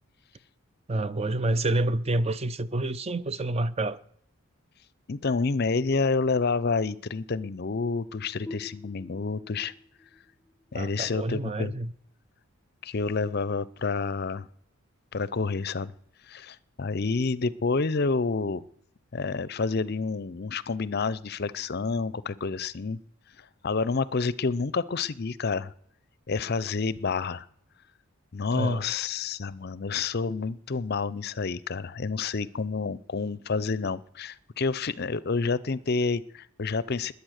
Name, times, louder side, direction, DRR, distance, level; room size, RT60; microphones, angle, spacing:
voice 1, 0.9-4.0 10.7-11.9 28.5-28.9, right 2 dB, 30° right, 0.6 m, -28 dB
voice 2, 5.1-9.7 10.7-11.7 12.8-14.5 15.1-15.9 16.3-18.6 19.1-23.0 23.4-25.7 26.3-27.5 28.3-37.1, left 4 dB, 50° left, 0.6 m, -29 dB
sound 1, 8.5-11.9, left 3 dB, 25° left, 1.2 m, -47 dB
21.0 x 8.3 x 6.5 m
head